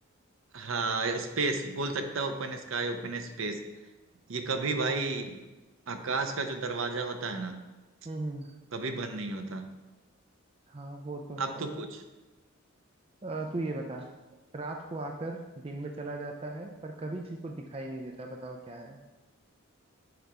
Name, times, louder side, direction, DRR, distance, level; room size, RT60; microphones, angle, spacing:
voice 1, 0.5-3.6 4.3-5.4 5.9-7.6 8.7-9.7 11.4-12.0, right 3 dB, 65° right, 6 dB, 0.7 m, -32 dB
voice 2, 8.0-8.5 10.7-11.8 13.2-14.1 14.5-19.0, right 2 dB, 25° right, 2 dB, 0.4 m, -38 dB
7.9 x 3.4 x 4.9 m, 1.2 s
head